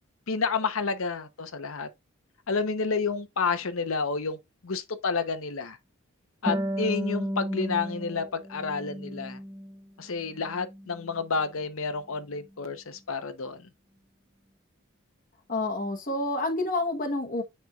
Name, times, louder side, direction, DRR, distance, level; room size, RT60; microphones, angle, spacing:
voice 1, 0.3-1.9 2.5-4.4 4.6-5.8 6.4-9.4 10.0-13.7, left 4 dB, 75° left, 0.9 m, -30 dB
Harp, 6.5-9.8 10.2-11.3, equal, 20° right, 0.9 m, -34 dB
voice 2, 15.5-17.4, left 2 dB, 40° left, 1.2 m, -28 dB
9.4 x 4.4 x 2.4 m
head